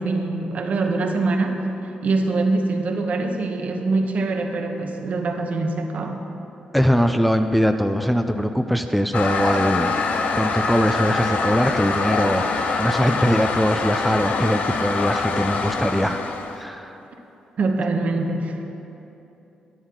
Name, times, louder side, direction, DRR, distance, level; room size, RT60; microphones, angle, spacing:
voice 1, 0.0-1.6 2.0-6.2 17.6-18.6, right 3 dB, 60° right, 4 dB, 1.1 m, -24 dB
voice 2, 6.7-10.0 10.3-16.2 16.5-17.0, equal, ahead, 6 dB, 0.5 m, -21 dB
Toilet flush, 9.1-16.6, left 4 dB, 70° left, 0.8 m, -24 dB
12.5 x 10.0 x 3.8 m, 3.0 s
cardioid pair, 65°, 3 cm